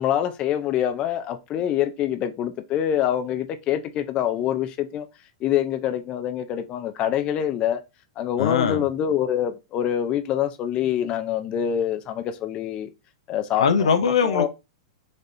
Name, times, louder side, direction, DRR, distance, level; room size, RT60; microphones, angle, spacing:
voice 1, 0.0-5.1 5.4-7.8 8.2-12.9 13.3-13.9 14.2-14.5, left 10 dB, 35° left, 0.5 m, -25 dB
voice 2, 8.4-8.8 13.6-14.5, left 6 dB, 85° left, 0.7 m, -21 dB
4.0 x 3.3 x 2.6 m
hypercardioid pair, 125°, 3 cm